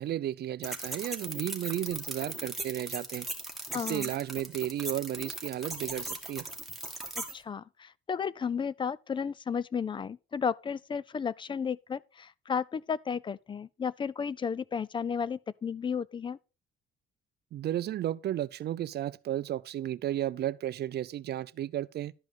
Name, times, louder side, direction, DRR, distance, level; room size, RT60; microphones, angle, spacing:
voice 1, 0.0-3.3 3.7-6.5 17.5-22.1, right 12 dB, 50° right, 0.5 m, -33 dB
sound 1, 0.6-7.3, right 2 dB, ahead, 2.1 m, -38 dB
voice 2, 3.7-4.1 7.2-16.4, left 6 dB, 25° left, 0.4 m, -33 dB
12.0 x 5.3 x 5.2 m
cardioid pair, 135°, 21 cm